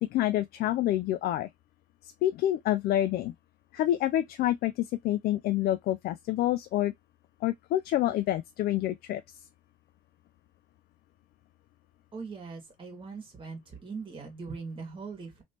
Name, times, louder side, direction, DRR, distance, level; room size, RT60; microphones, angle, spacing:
voice 1, 0.0-1.5 2.2-3.3 3.7-6.9 7.4-9.2, left 13 dB, 65° left, 0.4 m, -27 dB
voice 2, 12.1-15.4, right 4 dB, 30° right, 1.8 m, -41 dB
3.2 x 3.1 x 2.8 m
cardioid pair, 110°, 17 cm